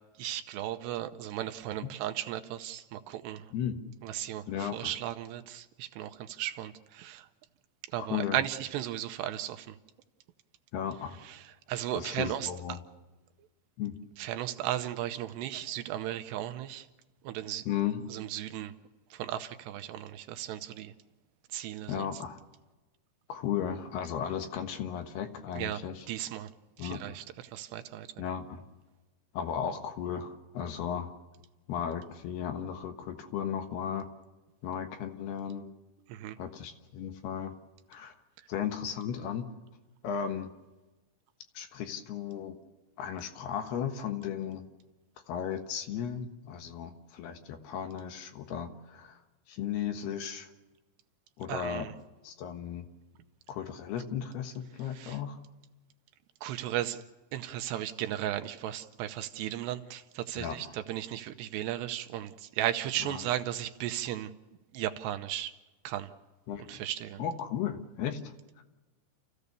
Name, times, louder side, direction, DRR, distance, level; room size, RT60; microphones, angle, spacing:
voice 1, 0.2-3.5 4.0-7.3 7.9-9.8 11.2-12.8 14.2-16.9 17.2-17.7 18.1-18.7 19.1-20.9 21.5-22.1 25.5-25.8 26.1-26.5 26.8-28.1 36.1-36.4 51.5-51.9 54.9-55.2 56.4-57.0 57.3-64.3 64.7-65.5 65.8-66.1 66.7-67.2, right 12 dB, 80° right, 9 dB, 2.9 m, -35 dB
voice 2, 3.5-3.8 4.5-4.8 8.0-8.4 10.7-11.2 12.0-12.8 13.8-14.0 17.7-18.1 21.9-22.4 23.3-26.0 26.8-27.2 28.2-28.6 29.3-31.1 31.7-34.1 34.6-35.6 36.4-37.5 37.9-38.1 38.5-39.5 40.0-40.5 41.5-42.6 43.0-44.6 45.3-49.2 49.5-50.5 51.4-51.9 52.2-52.9 53.5-55.4 60.4-60.7 63.0-63.2 66.5-66.7 67.2-68.6, left 8 dB, 70° left, 6 dB, 3.2 m, -35 dB
29.5 x 15.5 x 6.9 m, 1.1 s
omnidirectional pair, 5.1 m